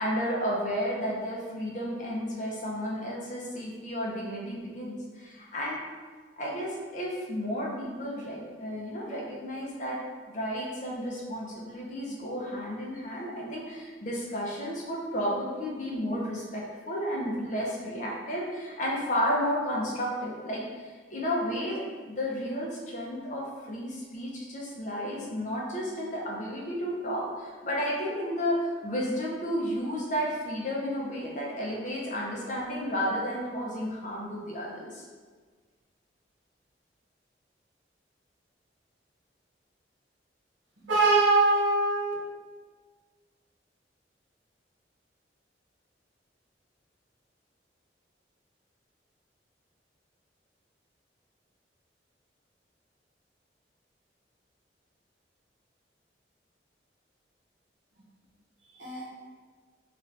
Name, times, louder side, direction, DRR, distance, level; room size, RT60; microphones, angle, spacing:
voice 1, 0.0-5.8 6.4-10.0 10.3-35.0, equal, 45° left, -3 dB, 0.6 m, -32 dB
voice 2, 40.8-42.1 58.6-59.1, right 3 dB, 85° right, -5 dB, 0.8 m, -23 dB
2.5 x 2.4 x 3.2 m, 1.5 s
head